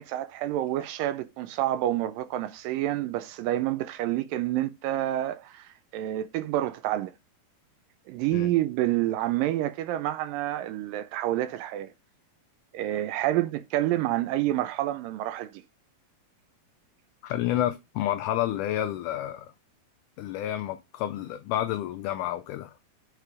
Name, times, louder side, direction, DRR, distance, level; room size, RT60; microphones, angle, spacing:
voice 1, 0.0-7.1 8.1-11.9 12.7-15.6, right 14 dB, 80° right, 2.2 m, -28 dB
voice 2, 17.2-19.5 20.2-22.8, left 12 dB, 85° left, 1.8 m, -30 dB
6.7 x 4.7 x 4.7 m
omnidirectional pair, 4.2 m